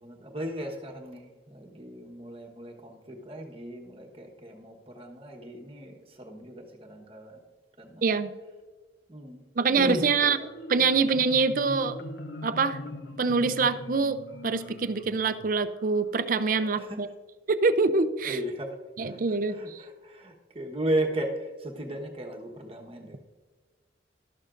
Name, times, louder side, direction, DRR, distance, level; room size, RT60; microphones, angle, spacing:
voice 1, 0.0-7.4 7.8-8.0 9.1-9.4 9.7-10.5 11.0-11.3 16.7-17.0 18.2-23.2, right 1 dB, 30° right, 1 dB, 1.2 m, -36 dB
voice 2, 8.0-8.3 9.6-10.4 10.7-12.0 12.4-12.8 13.2-14.2 14.4-17.1 17.5-18.4 19.0-19.8, right 4 dB, 50° right, 12 dB, 0.5 m, -25 dB
Marimba xylophone, 10.4-16.0, left 1 dB, 70° left, 0.7 m, -41 dB
12.5 x 11.5 x 2.5 m, 1.4 s
head